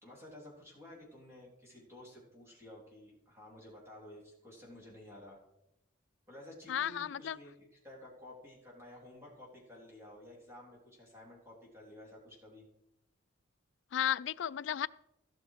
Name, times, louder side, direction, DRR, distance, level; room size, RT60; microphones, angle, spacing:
voice 1, 0.0-5.4 6.3-12.7, left 1 dB, 15° right, -3 dB, 3.6 m, -53 dB
voice 2, 6.7-7.4 13.9-14.9, left 10 dB, 70° left, 17 dB, 0.3 m, -33 dB
16.0 x 6.5 x 4.8 m, 0.84 s
head